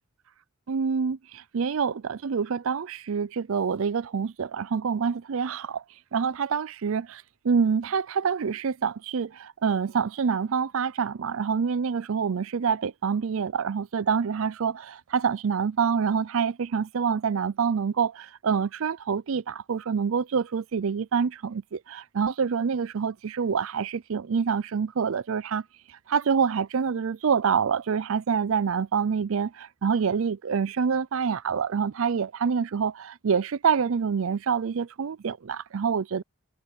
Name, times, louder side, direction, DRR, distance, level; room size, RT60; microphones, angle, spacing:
voice 1, 0.7-5.8 6.1-25.6 26.1-36.2, right 6 dB, 65° right, 0.4 m, -26 dB
head